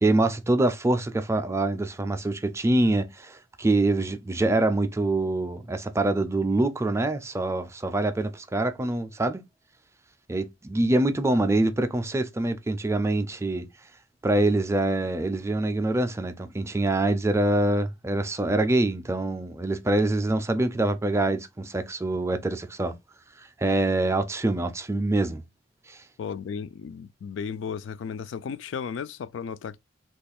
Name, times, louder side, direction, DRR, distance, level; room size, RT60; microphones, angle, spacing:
voice 1, 0.0-9.4 10.3-13.7 14.2-22.9 23.4-25.5 25.9-26.0, right 2 dB, 15° right, 0.4 m, -25 dB
voice 2, 26.2-29.8, left 6 dB, 70° left, 0.3 m, -34 dB
3.0 x 2.4 x 4.2 m
head